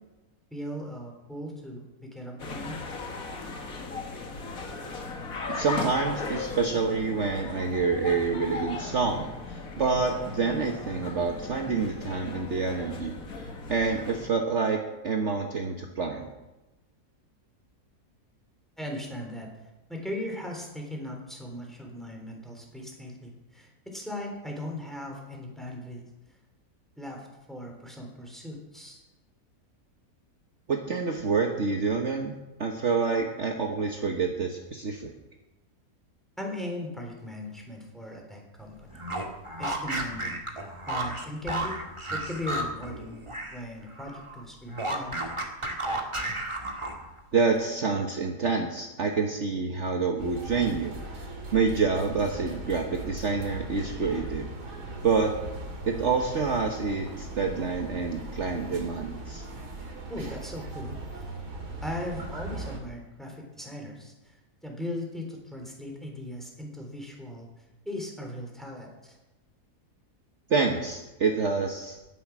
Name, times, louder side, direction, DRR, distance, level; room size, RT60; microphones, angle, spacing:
voice 1, 0.5-2.8 18.8-19.5 19.9-26.0 27.0-29.0 36.4-39.0 39.6-40.4 40.9-41.7 42.1-43.2 43.5-45.2 60.1-61.3 61.8-64.1 64.6-67.5 67.9-69.1, left 1 dB, ahead, 1 dB, 3.6 m, -38 dB
sound 1, 2.4-14.3, left 3 dB, 60° left, 2.2 m, -37 dB
voice 2, 5.5-13.1 13.7-14.8 15.0-16.3 30.7-32.3 32.6-35.1 47.3-54.5 55.0-55.3 55.9-59.4 70.5-72.0, right 4 dB, 50° right, 2 dB, 1.5 m, -27 dB
sound 2, 38.9-43.6 43.9-47.2, right 1 dB, 20° right, 1.9 m, -33 dB
sound 3, 50.2-62.8, right 2 dB, 80° right, 3.1 m, -39 dB
16.0 x 11.5 x 6.1 m, 1.0 s
omnidirectional pair, 1.7 m